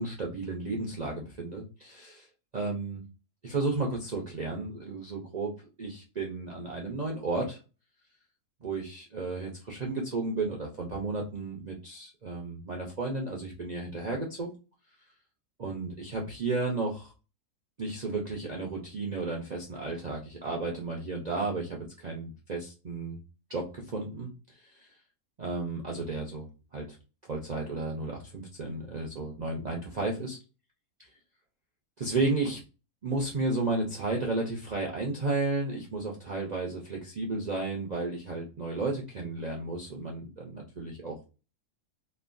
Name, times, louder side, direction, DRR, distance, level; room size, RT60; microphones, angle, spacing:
voice 1, 0.0-2.3 2.5-3.0 3.4-5.5 5.8-7.6 8.6-14.5 15.6-17.1 17.8-23.2 23.5-24.9 25.4-27.0 27.3-30.4 31.0-31.1 32.0-32.6 33.0-41.3, right 3 dB, 70° right, -1 dB, 0.4 m, -33 dB
3.1 x 2.2 x 2.5 m, 0.32 s
omnidirectional pair, 1.6 m